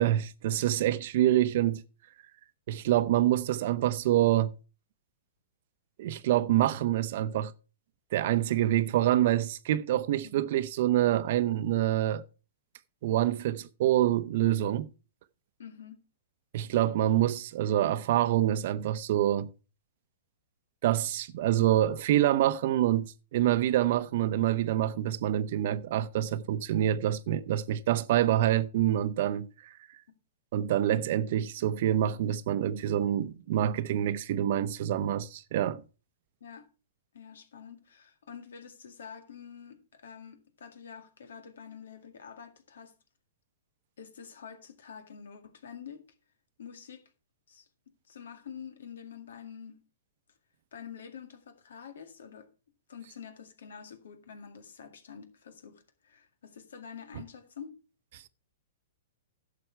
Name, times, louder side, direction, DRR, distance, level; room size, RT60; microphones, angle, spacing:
voice 1, 0.0-1.8 2.7-4.5 6.0-7.5 8.1-12.2 13.0-14.9 16.5-19.5 20.8-29.5 30.5-35.8, right 12 dB, 55° right, 0.8 m, -26 dB
voice 2, 15.6-16.0 36.4-36.7 37.1-42.9 44.0-46.1 46.6-47.1 47.5-47.7 48.1-49.8 50.7-52.5 52.9-57.7, left 7 dB, 75° left, 2.0 m, -47 dB
11.0 x 6.9 x 4.6 m
hypercardioid pair, 130°, 0 cm